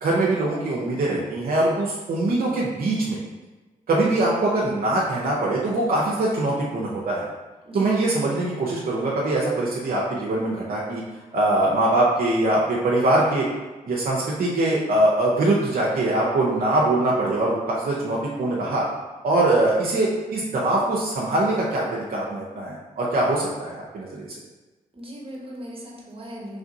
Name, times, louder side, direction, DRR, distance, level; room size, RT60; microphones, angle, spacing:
voice 1, 0.0-3.2 3.9-7.3 7.7-11.0 11.3-13.5 13.9-18.8 19.2-24.3, right 2 dB, 60° right, -5 dB, 0.7 m, -22 dB
voice 2, 7.6-8.4 24.9-26.6, equal, 35° right, -3 dB, 1.2 m, -38 dB
3.3 x 2.5 x 3.9 m, 1.2 s
supercardioid pair, 40°, 17 cm